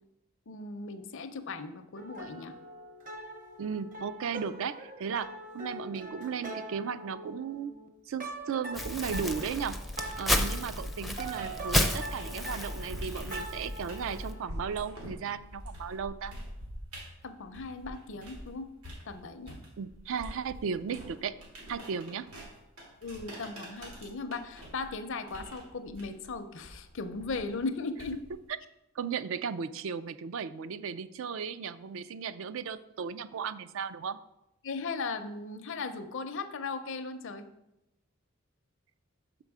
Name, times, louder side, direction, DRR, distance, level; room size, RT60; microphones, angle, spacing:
voice 1, 0.5-2.5 17.2-18.7 19.1-19.6 23.0-28.2 34.6-37.4, left 3 dB, 60° left, 10 dB, 0.6 m, -37 dB
sound 1, 1.9-7.9 8.2-14.5, right 2 dB, 40° right, 0.7 m, -43 dB
voice 2, 3.6-5.3 5.5-7.8 8.1-9.8 10.2-16.3 19.8-21.4 21.7-22.3 29.0-34.2, right 6 dB, 60° right, 13 dB, 0.4 m, -35 dB
Crumpling crinkling, 8.7-14.3, left 1 dB, ahead, 0.4 m, -32 dB
sound 2, 11.1-18.5 18.8-28.4, equal, 90° right, 2.6 m, -46 dB
6.5 x 5.3 x 4.8 m, 0.89 s
head